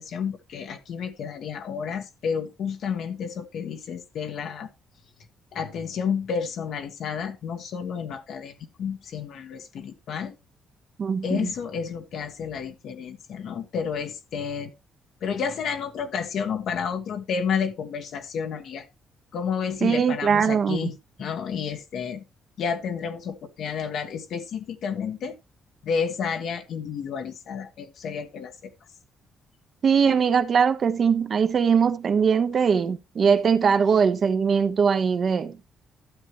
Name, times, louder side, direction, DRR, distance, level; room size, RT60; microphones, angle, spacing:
voice 1, 0.0-4.7 5.5-10.3 11.2-14.7 15.2-18.8 19.3-22.2 22.6-25.3 25.8-28.7, left 6 dB, 70° left, 1.3 m, -31 dB
voice 2, 11.0-11.5 19.8-20.9 29.8-35.6, right 6 dB, 50° right, 1.0 m, -21 dB
12.5 x 7.4 x 3.0 m
cardioid pair, 90°, 0 cm